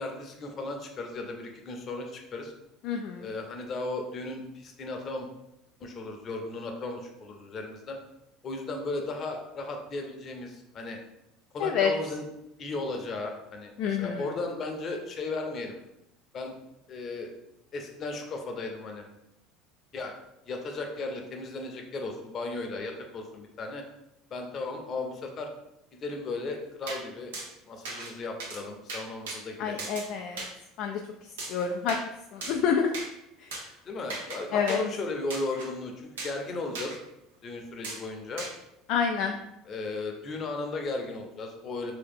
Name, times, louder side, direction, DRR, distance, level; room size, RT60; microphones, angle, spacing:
voice 1, 0.0-2.5 3.2-5.3 5.8-8.0 8.4-11.0 11.5-12.2 12.6-15.8 16.3-16.5 16.9-17.3 17.7-19.1 19.9-20.1 20.5-23.8 24.3-25.5 25.9-27.3 27.7-29.9 33.9-37.0 37.4-38.5 39.7-41.9, left 3 dB, 40° left, 3 dB, 0.8 m, -35 dB
voice 2, 2.8-3.2 11.6-11.9 13.8-14.3 29.6-30.4 30.8-31.0 31.5-32.0 32.3-32.9 34.5-34.8 38.9-39.4, left 7 dB, 60° left, 3 dB, 0.3 m, -27 dB
sound 1, 26.9-27.0 27.3-27.5 27.8-28.1 28.4-28.6 28.9-29.4 29.8-30.1 30.4-30.5 31.4-32.0 32.4-32.6 32.9-33.1 33.5-33.6 34.1-34.4 34.7-34.8 35.3-35.7 36.2-36.4 36.7-37.0 37.8-38.0 38.4-38.5, right 3 dB, 90° right, 0.8 m, -37 dB
3.2 x 2.9 x 3.6 m, 0.86 s
hypercardioid pair, 85°, 0 cm